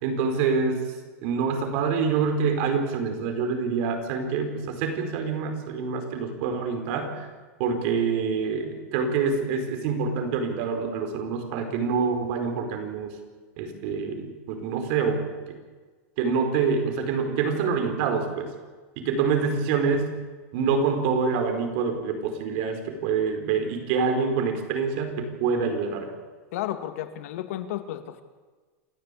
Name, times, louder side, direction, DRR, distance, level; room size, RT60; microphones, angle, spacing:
voice 1, 0.0-0.8 1.2-7.3 7.6-13.1 13.6-15.6 16.2-18.5 19.0-20.2 20.5-26.1, right 5 dB, 55° right, 5 dB, 4.8 m, -26 dB
voice 2, 26.5-28.2, left 12 dB, 70° left, 8 dB, 2.3 m, -32 dB
27.5 x 14.0 x 8.6 m, 1.4 s
supercardioid pair, 160°, 8 cm